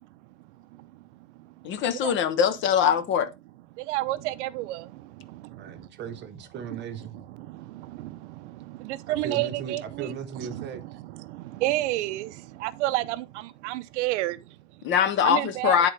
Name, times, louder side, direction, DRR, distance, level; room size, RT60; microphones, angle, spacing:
voice 1, 1.6-3.3 14.8-15.9, left 8 dB, 35° left, 0.6 m, -22 dB
voice 2, 3.8-5.9 6.7-6.8 7.1-14.8 15.2-15.8, right 17 dB, 75° right, 0.5 m, -31 dB
voice 3, 5.6-7.2 9.1-10.8, right 7 dB, 30° right, 0.9 m, -37 dB
9.9 x 3.7 x 3.2 m
supercardioid pair, 140°, 36 cm